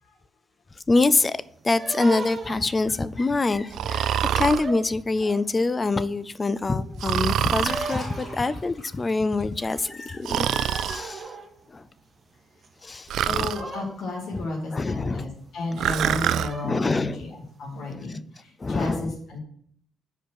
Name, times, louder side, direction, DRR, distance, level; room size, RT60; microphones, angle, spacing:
voice 1, 0.9-1.4 1.6-11.3 11.7-11.8 12.8-13.5 14.3-14.4 14.7-15.3 16.6-17.3 18.6-19.1, left 3 dB, 25° left, 0.3 m, -25 dB
sound 1, 0.9-5.7 6.1-12.9 13.2-14.8 15.3-15.4 15.9-16.0 16.3-17.4, right 3 dB, 35° right, 0.8 m, -39 dB
Breathing, 3.7-4.6 7.0-8.0 10.2-11.0 13.1-13.6 15.8-16.5, right 10 dB, 75° right, 0.3 m, -25 dB
Liquid, 7.3-10.6 10.9-11.2, left 2 dB, 40° left, 2.8 m, -43 dB
voice 2, 13.3-17.3 17.6-19.4, left 2 dB, 80° left, 2.1 m, -32 dB
5.3 x 5.1 x 6.2 m
cardioid pair, 115°, 0 cm